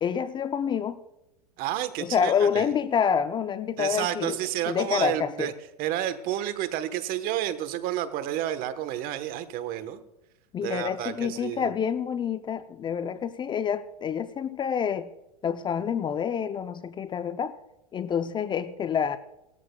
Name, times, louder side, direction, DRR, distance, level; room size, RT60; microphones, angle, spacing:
voice 1, 0.0-1.0 2.0-4.4 4.7-5.5 10.5-15.1 15.4-17.5 17.9-19.2, left 7 dB, 25° left, 13 dB, 0.5 m, -27 dB
voice 2, 1.6-2.6 3.8-5.5 5.8-10.0 10.6-11.7, right 12 dB, 45° right, 12 dB, 1.1 m, -30 dB
18.0 x 13.5 x 2.3 m, 0.93 s
hypercardioid pair, 110°, 20 cm